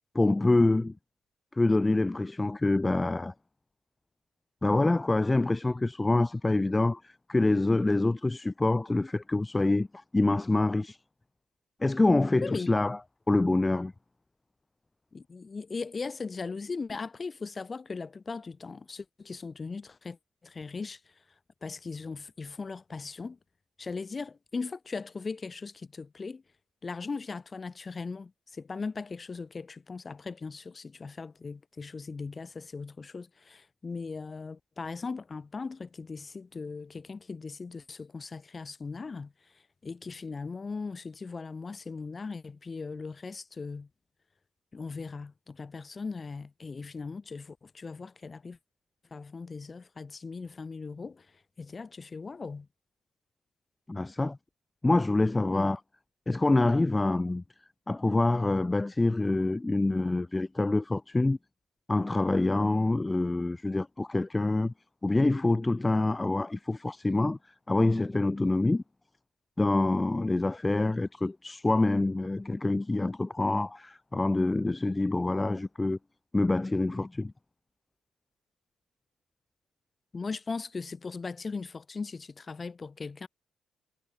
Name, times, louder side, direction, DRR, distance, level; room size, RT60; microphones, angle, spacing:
voice 1, 0.1-0.9 1.6-3.3 4.6-11.0 11.8-13.0 13.3-13.9 53.9-54.4 54.8-55.8 56.3-57.4 57.9-61.4 61.9-64.7 65.0-67.4 67.7-68.8 69.6-76.0 76.3-77.3, left 2 dB, 15° left, 0.5 m, -26 dB
voice 2, 15.1-20.2 20.4-21.1 21.6-23.4 23.8-26.4 26.8-43.9 44.7-48.6 49.1-52.7 55.5-55.8 80.1-83.3, left 4 dB, 30° left, 1.2 m, -39 dB
cardioid pair, 90°, 0 cm